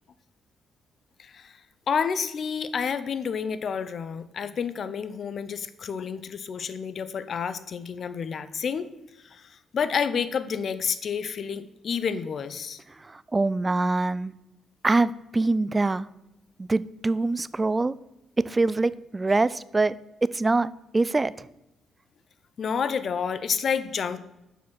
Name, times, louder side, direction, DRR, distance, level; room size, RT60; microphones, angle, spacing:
voice 1, 1.2-1.6 1.9-8.9 9.2-12.8 22.6-24.2, left 6 dB, 50° left, 13 dB, 0.6 m, -29 dB
voice 2, 13.0-14.3 14.8-16.1 16.6-17.9 18.4-20.0 20.2-21.5, right 3 dB, 20° right, 18 dB, 0.3 m, -24 dB
7.1 x 6.0 x 6.1 m, 0.90 s
cardioid pair, 105°, 0 cm